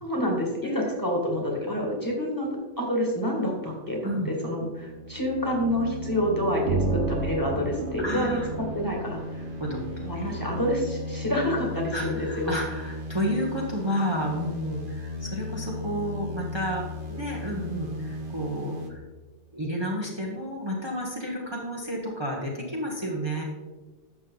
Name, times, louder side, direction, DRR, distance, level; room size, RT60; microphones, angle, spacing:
voice 1, 0.0-8.4 8.7-9.4 10.0-12.6, equal, 15° left, -1 dB, 2.1 m, -28 dB
voice 2, 0.6-1.0 4.0-4.3 8.0-8.5 9.6-9.8 10.1-10.5 11.9-19.0 19.5-23.4, equal, 25° right, -2 dB, 1.2 m, -31 dB
sound 1, 3.7-18.9, left 2 dB, 45° right, 1.4 m, -37 dB
sound 2, 5.6-10.6, right 4 dB, 75° right, 1.1 m, -33 dB
12.0 x 7.5 x 4.0 m, 1.3 s
omnidirectional pair, 1.2 m